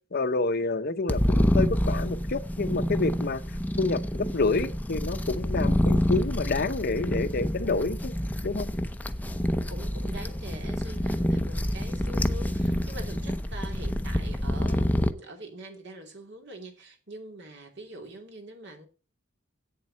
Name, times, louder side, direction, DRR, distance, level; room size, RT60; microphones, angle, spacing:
voice 1, 0.1-3.4 3.8-8.1 8.4-8.7, left 3 dB, 50° left, 0.8 m, -28 dB
sound 1, 1.1-15.1, equal, 10° left, 0.7 m, -27 dB
voice 2, 9.2-18.9, right 1 dB, 60° right, 2.8 m, -44 dB
8.6 x 7.2 x 7.5 m
head